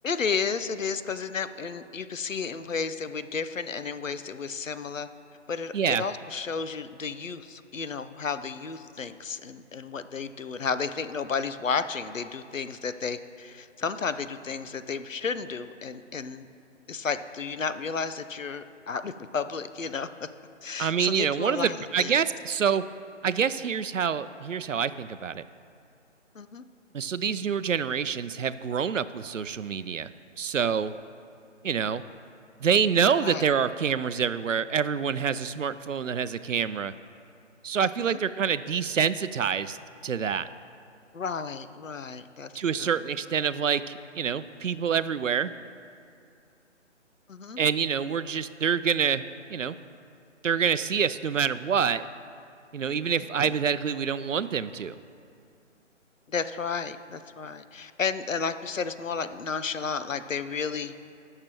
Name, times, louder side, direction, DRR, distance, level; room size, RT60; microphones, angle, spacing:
voice 1, 0.0-5.1 5.5-16.5 16.9-20.1 20.6-22.1 26.3-26.6 33.2-33.4 37.8-38.2 41.1-42.5 42.8-43.0 47.3-47.6 53.4-53.5 56.3-60.9, left 5 dB, 85° left, 12 dB, 0.7 m, -32 dB
voice 2, 5.7-6.0 20.8-22.8 23.2-25.4 26.9-30.1 30.4-30.9 31.6-32.0 32.6-36.9 37.6-39.8 40.0-40.5 42.6-45.5 47.6-49.2 49.5-49.7 50.4-52.1 52.7-55.0, right 7 dB, 80° right, 14 dB, 0.5 m, -26 dB
20.0 x 6.7 x 3.0 m, 2.5 s
figure-of-eight pair, 145°, 38 cm